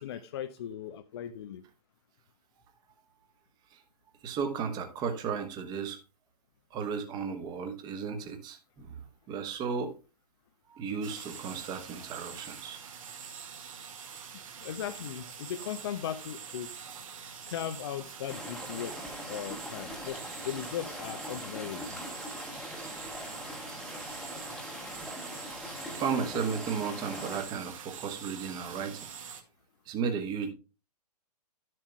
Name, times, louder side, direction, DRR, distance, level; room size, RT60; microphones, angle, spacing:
voice 1, 0.0-1.6 14.6-16.7 17.5-19.0 19.3-22.0, left 10 dB, 40° left, 0.6 m, -38 dB
voice 2, 4.2-6.0 6.7-8.9 9.3-9.9 10.7-12.8 25.9-29.1 29.9-30.5, right 6 dB, 20° right, 1.3 m, -34 dB
sound 1, 11.0-29.4, right 7 dB, 55° right, 1.8 m, -45 dB
sound 2, 18.3-27.4, left 1 dB, ahead, 1.3 m, -42 dB
12.0 x 7.5 x 2.2 m
figure-of-eight pair, 125°, 20 cm